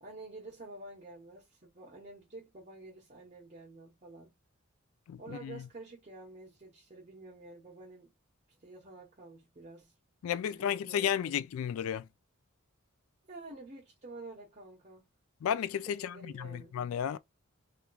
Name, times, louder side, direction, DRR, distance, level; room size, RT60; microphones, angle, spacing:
voice 1, 0.0-4.3 5.2-8.1 8.5-9.9 10.5-11.4 13.3-15.0 15.9-16.7, right 2 dB, 35° right, 0.9 m, -49 dB
voice 2, 5.1-5.6 10.2-12.1 15.4-17.2, left 9 dB, 80° left, 0.3 m, -33 dB
3.4 x 2.9 x 2.3 m
head